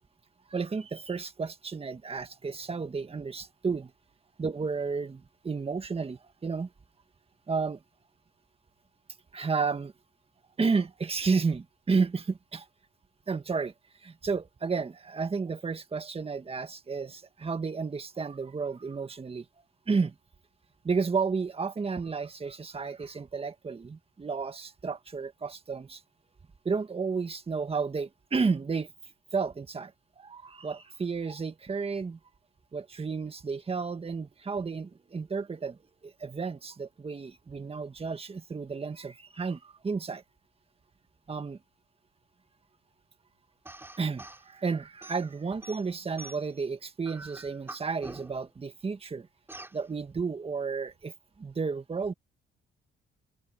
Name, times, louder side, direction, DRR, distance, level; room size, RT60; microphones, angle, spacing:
voice 1, 0.5-3.9 4.4-6.7 7.5-7.8 9.3-9.9 10.6-12.7 13.3-13.7 14.0-19.5 19.9-20.2 20.8-26.0 26.7-28.9 29.3-29.9 30.2-32.2 32.7-35.8 36.0-40.2 41.3-41.6 44.0-49.3 49.7-52.1, right 4 dB, 30° right, 1.7 m, -32 dB
sound 1, 43.7-44.5 45.0-46.6 47.0-48.5 49.5-49.8, right 2 dB, 10° right, 3.6 m, -46 dB
cardioid pair, 90°, 20 cm